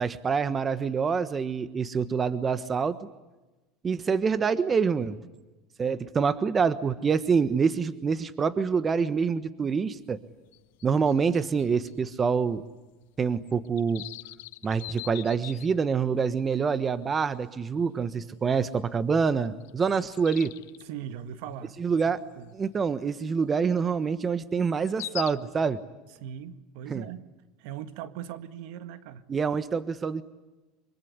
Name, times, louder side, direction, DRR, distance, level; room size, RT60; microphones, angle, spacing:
voice 1, 0.0-3.0 3.8-5.2 5.8-10.2 10.8-12.6 13.2-14.0 14.6-20.5 21.8-22.2 22.5-25.8 26.9-27.0 29.3-30.2, right 5 dB, 25° right, 14 dB, 1.3 m, -26 dB
sound 1, 9.6-9.7 10.0-10.1 10.5-12.2 12.5-12.6 13.0-13.1 13.5-16.1 16.7-16.8 17.3-17.5 17.8-18.0 18.9-19.0 19.5-20.8 22.0-22.2 22.6-22.7 24.6-25.3, left 19 dB, 80° left, 0.9 m, -42 dB
voice 2, 20.8-21.8 22.4-22.6 26.2-27.3 27.6-29.3, right 10 dB, 70° right, 11 dB, 1.8 m, -39 dB
25.5 x 23.5 x 9.7 m, 1.1 s
supercardioid pair, 115°, 0 cm